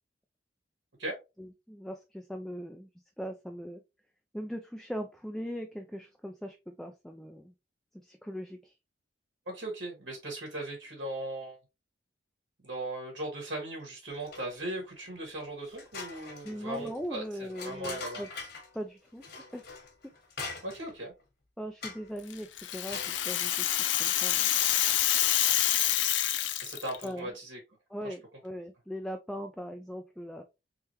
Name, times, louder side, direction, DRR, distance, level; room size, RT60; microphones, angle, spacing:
voice 1, 1.4-2.9 3.2-3.8 4.3-7.5 8.0-8.7 16.4-18.3 18.7-19.2 19.5-19.6 21.6-22.5 22.7-24.5 27.0-27.3 27.9-30.4, equal, ahead, 4 dB, 0.3 m, -40 dB
voice 2, 9.5-11.6 12.6-18.2 20.6-21.1 26.6-27.6 28.0-28.1, right 1 dB, 80° right, 0 dB, 1.7 m, -38 dB
sound 1, 14.1-14.7 15.1-15.2 15.6-18.8 19.2-21.0 21.8-22.2 22.6-23.2, left 4 dB, 60° left, 1.3 m, -43 dB
Rattle (instrument), 22.3-27.0, left 12 dB, 75° left, 0.5 m, -27 dB
3.6 x 3.2 x 3.0 m, 0.25 s
head